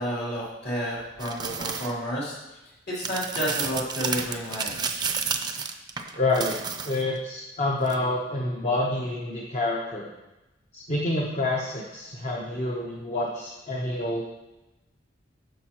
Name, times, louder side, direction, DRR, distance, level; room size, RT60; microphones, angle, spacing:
voice 1, 0.0-5.0, equal, 60° left, -6 dB, 3.1 m, -31 dB
sound 1, 1.2-1.9 3.0-7.2 7.9-8.0, right 5 dB, 25° right, 0.5 m, -31 dB
voice 2, 6.1-6.6 6.8-10.1 10.7-14.2, left 2 dB, 40° left, -2 dB, 0.8 m, -28 dB
10.0 x 6.4 x 3.0 m, 1.0 s
head